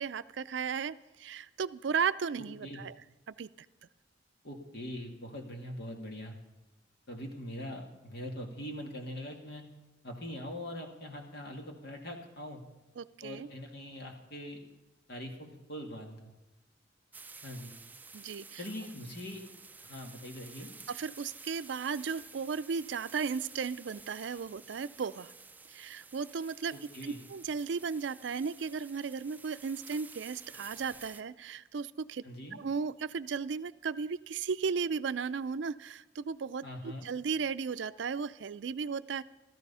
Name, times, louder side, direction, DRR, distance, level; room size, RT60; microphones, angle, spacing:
voice 1, 0.0-2.9 3.3-3.5 13.0-13.5 18.1-18.6 20.9-25.3 25.7-26.7 27.0-32.2 32.5-39.2, right 5 dB, 70° right, 14 dB, 0.4 m, -35 dB
voice 2, 2.4-2.8 4.4-6.4 7.1-9.6 10.0-12.6 13.2-14.6 15.1-16.3 17.4-17.7 18.6-19.4 19.8-20.7 26.7-27.2 32.2-32.6 36.6-37.1, left 1 dB, 60° left, 2 dB, 2.1 m, -42 dB
sound 1, 17.1-31.2, right 4 dB, 10° right, 0.4 m, -52 dB
14.0 x 13.5 x 5.5 m, 1.0 s
head